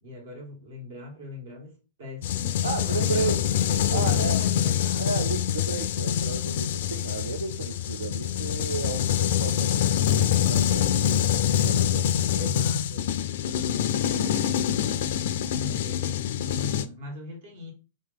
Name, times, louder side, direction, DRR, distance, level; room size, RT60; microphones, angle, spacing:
voice 1, 0.0-5.3 12.3-13.1 15.4-17.7, left 1 dB, 70° right, 1.5 m, -41 dB
sound 1, 2.2-16.9, left 10 dB, 65° left, 0.3 m, -25 dB
voice 2, 2.6-3.4 3.9-4.4 5.0-12.1 13.5-13.6, right 5 dB, 90° right, 0.4 m, -34 dB
2.8 x 2.7 x 3.9 m
hypercardioid pair, 120°, 0 cm